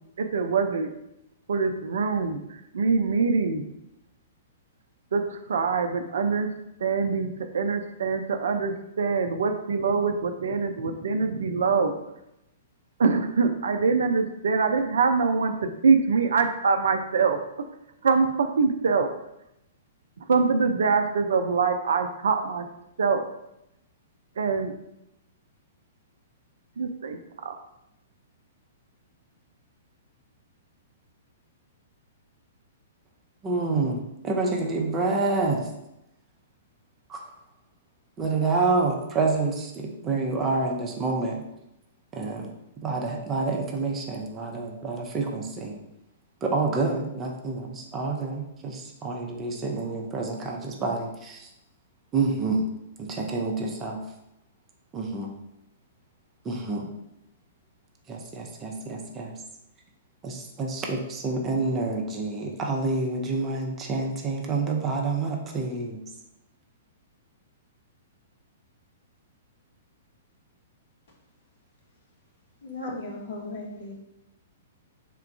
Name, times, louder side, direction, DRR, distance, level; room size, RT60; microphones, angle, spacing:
voice 1, 0.2-0.9 1.5-3.6 5.1-6.5 6.8-11.9 13.0-17.4 18.0-19.1 20.2-22.7 23.0-23.2 24.4-24.7 26.8-27.5, right 5 dB, 60° right, 6 dB, 0.4 m, -24 dB
voice 2, 33.4-35.7 37.1-37.2 38.2-41.4 42.1-42.5 42.8-45.8 46.4-51.5 52.1-52.7 53.0-54.0 54.9-55.3 56.4-56.9 58.1-59.3 60.2-66.0, right 3 dB, 20° right, 1 dB, 0.6 m, -28 dB
voice 3, 72.6-74.0, left 2 dB, 50° left, -2 dB, 1.2 m, -36 dB
3.7 x 2.4 x 4.6 m, 0.85 s
figure-of-eight pair, 110°, 0 cm